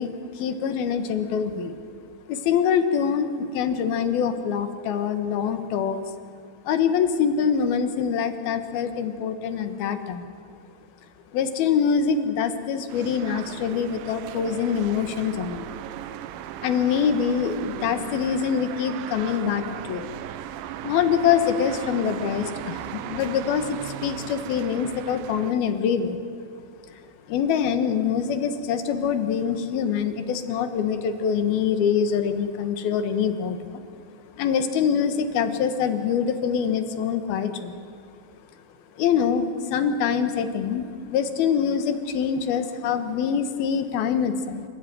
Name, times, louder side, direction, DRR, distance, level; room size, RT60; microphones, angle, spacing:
voice 1, 0.0-1.7 2.3-6.0 6.6-10.3 11.3-15.7 16.6-20.1 20.8-26.2 26.8-27.0 27.3-33.8 34.3-37.8 39.0-44.7, left 7 dB, 80° left, 9 dB, 3.2 m, -24 dB
sound 1, 12.9-25.5, right 12 dB, 75° right, 2.4 m, -37 dB
28.5 x 15.5 x 9.3 m, 2.5 s
omnidirectional pair, 4.3 m